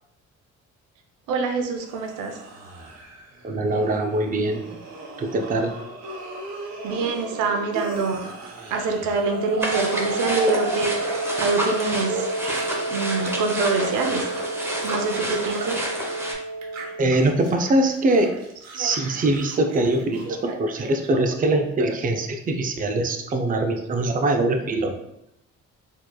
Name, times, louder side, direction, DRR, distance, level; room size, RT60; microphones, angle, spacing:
voice 1, 1.3-2.4 6.8-8.2 8.7-12.3 12.9-14.3 14.8-15.8 18.7-18.9 20.3-20.6 21.8-21.9 23.5-23.6, right 4 dB, 90° right, 4 dB, 0.6 m, -25 dB
sound 1, 1.8-13.3 13.6-16.2 16.6-21.1, right 4 dB, 60° right, 0.9 m, -37 dB
voice 2, 3.4-4.6 5.2-5.7 15.6-15.7 17.0-18.3 18.7-24.9, right 2 dB, 30° right, 4 dB, 0.5 m, -22 dB
Wind instrument woodwind instrument, 9.3-17.2, right 2 dB, 30° left, 0.4 m, -30 dB
sound 2, 9.6-16.3, equal, 10° right, 0.9 m, -29 dB
4.4 x 2.9 x 2.2 m, 0.80 s
cardioid pair, 90°, 30 cm